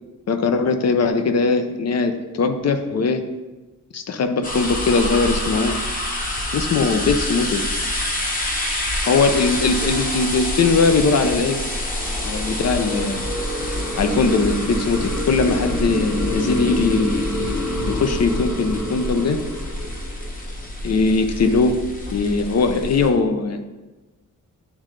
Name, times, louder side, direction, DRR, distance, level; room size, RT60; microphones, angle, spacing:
voice 1, 0.3-3.2 3.9-5.8 6.5-7.7 9.0-11.6 12.2-13.2 14.0-17.2 17.9-19.4 20.8-21.8 22.1-23.6, left 4 dB, 50° left, 8 dB, 0.5 m, -20 dB
sound 1, 4.4-23.1, left 1 dB, 25° left, 0.9 m, -27 dB
sound 2, 10.4-20.7, left 1 dB, 5° left, 1.1 m, -28 dB
9.4 x 3.7 x 3.2 m, 1.2 s
wide cardioid pair, 140°, 33 cm